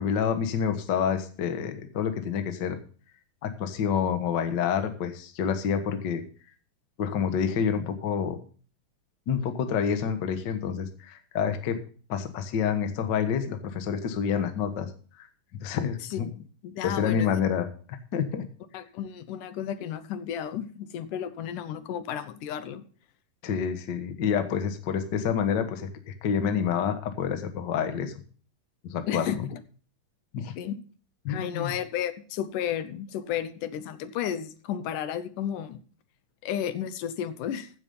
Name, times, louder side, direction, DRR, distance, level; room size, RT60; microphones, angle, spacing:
voice 1, 0.0-2.8 3.4-6.2 7.0-8.4 9.3-11.8 12.1-14.9 15.2-15.3 15.6-16.3 16.8-18.4 23.4-28.1 28.8-29.5 30.3-30.5 31.2-31.7, left 7 dB, 50° left, 1.4 m, -28 dB
voice 2, 16.1-17.4 18.7-22.9 29.1-29.6 30.6-30.8 31.3-35.8 36.4-37.7, left 9 dB, 80° left, 2.4 m, -33 dB
15.0 x 7.4 x 5.4 m
omnidirectional pair, 3.6 m